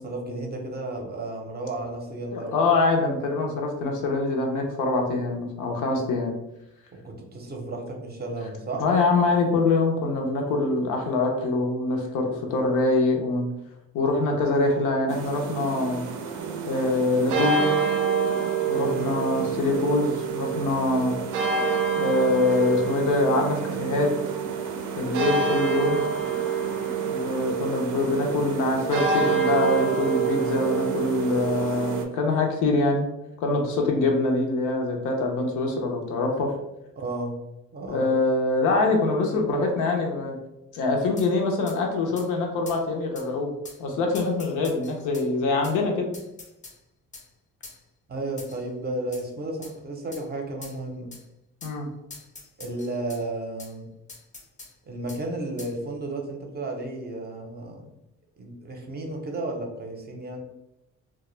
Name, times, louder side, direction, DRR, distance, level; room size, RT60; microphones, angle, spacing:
voice 1, 0.0-2.5 7.0-8.8 18.8-19.1 37.0-37.4 37.7-38.2 48.1-51.1 52.6-53.9 54.9-57.9 58.4-60.4, right 2 dB, 35° right, 1 dB, 0.6 m, -33 dB
voice 2, 2.3-6.3 8.8-13.5 13.9-16.0 16.7-17.7 18.7-21.1 22.0-24.1 25.0-26.0 27.1-33.1 33.4-36.5 37.9-40.3 40.7-43.5 43.8-46.1 51.6-51.9, left 3 dB, 90° left, 1 dB, 0.6 m, -24 dB
sound 1, 15.1-32.1, right 6 dB, 85° right, 0.5 m, -27 dB
sound 2, 41.2-41.3 41.7-41.8 42.2-42.3 42.7-42.8 43.1-43.3 43.6-43.8 44.1-45.3 45.6-45.8 46.1-46.8 47.1-47.3 47.6-47.8 48.4-48.6 49.1-49.3 49.6-49.7 50.1-50.2 50.6-50.8 51.1-51.2 51.6-51.8 52.1-53.2 53.6-53.7 54.1-54.7 55.1-55.2 55.6-55.7, left 3 dB, 25° left, 0.4 m, -44 dB
2.1 x 2.0 x 3.0 m, 0.90 s
cardioid pair, 90°, 30 cm